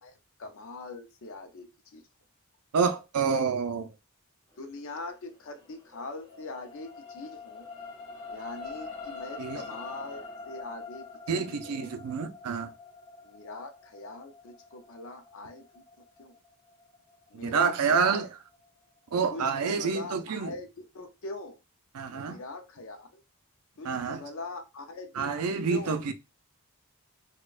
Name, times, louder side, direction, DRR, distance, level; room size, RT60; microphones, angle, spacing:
voice 1, 0.0-2.0 4.6-7.7 8.3-11.1 11.3-11.9 13.2-16.4 17.3-18.2 19.3-21.6 22.1-23.2 23.8-26.0, left 2 dB, 60° left, 0.5 m, -42 dB
voice 2, 2.7-3.9 9.4-9.6 11.3-12.7 17.4-18.3 19.1-20.5 21.9-22.4 23.9-24.2 25.2-26.1, right 5 dB, 90° right, 0.4 m, -28 dB
sound 1, 5.5-18.0 18.5-18.6, left 4 dB, 25° left, 1.2 m, -45 dB
4.1 x 2.2 x 2.4 m
head